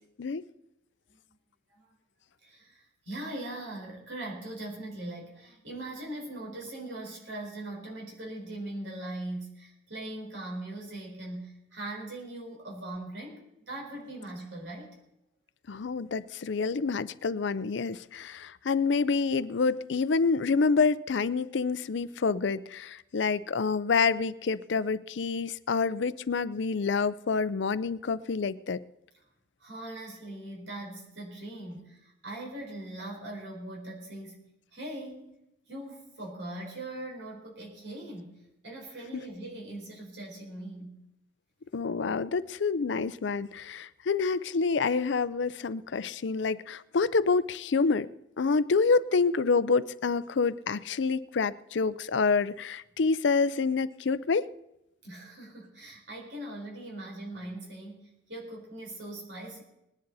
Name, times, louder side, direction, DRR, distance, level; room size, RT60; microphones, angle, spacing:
voice 1, 2.4-14.9 29.6-34.4 34.7-35.3 35.7-41.0 55.0-59.6, right 1 dB, 70° right, 4.5 m, -40 dB
voice 2, 15.7-28.8 41.7-48.1 48.4-54.5, left 4 dB, 70° left, 0.5 m, -27 dB
20.0 x 10.5 x 4.1 m
head